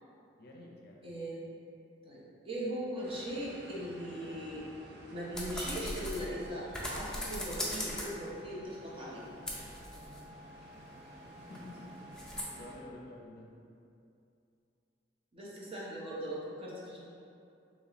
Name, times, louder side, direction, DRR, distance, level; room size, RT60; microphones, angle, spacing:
voice 1, 0.4-1.1 11.1-13.5, left 1 dB, 60° left, -2 dB, 0.5 m, -51 dB
voice 2, 1.0-1.5 2.0-4.7 5.1-9.3 15.3-17.0, equal, 30° right, -6 dB, 0.8 m, -39 dB
sound 1, 3.0-12.8, right 1 dB, 65° right, 0.6 m, -52 dB
sound 2, 5.3-8.3 8.8-12.4, left 1 dB, 5° left, 0.5 m, -41 dB
4.1 x 2.9 x 3.0 m, 2.6 s
head